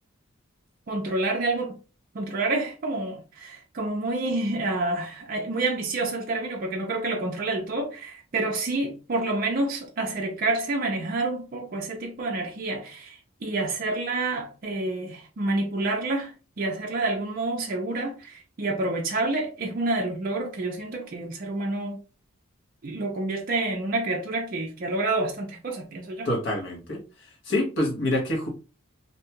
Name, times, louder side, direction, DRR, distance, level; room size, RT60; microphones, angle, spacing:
voice 1, 0.9-1.8 2.1-22.0 22.8-26.3, right 2 dB, 45° right, 0.4 m, -28 dB
voice 2, 26.2-27.0 27.5-28.5, left 1 dB, 60° left, 1.0 m, -26 dB
2.6 x 2.2 x 2.8 m
head